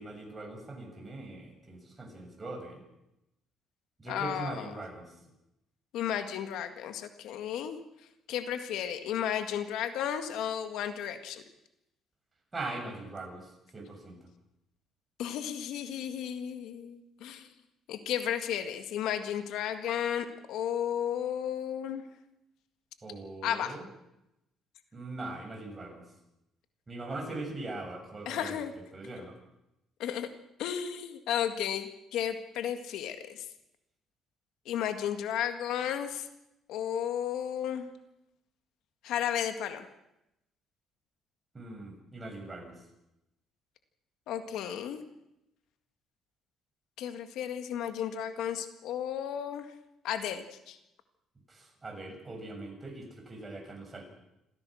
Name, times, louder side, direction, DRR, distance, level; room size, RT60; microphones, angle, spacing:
voice 1, 0.0-2.8 4.0-5.1 12.5-14.2 23.0-23.8 24.9-26.0 26.9-28.6 28.9-29.4 41.5-42.8 51.5-54.0, right 2 dB, 25° right, 2 dB, 7.4 m, -41 dB
voice 2, 4.1-4.7 5.9-7.8 8.3-11.4 15.2-17.5 17.9-22.0 23.4-23.8 28.3-28.7 30.0-30.3 30.6-33.5 34.7-36.3 36.7-37.9 39.0-39.9 44.3-45.0 47.0-49.7 50.0-50.8, left 9 dB, 80° left, 8 dB, 1.9 m, -33 dB
27.5 x 16.0 x 6.4 m, 0.87 s
cardioid pair, 105°, 0 cm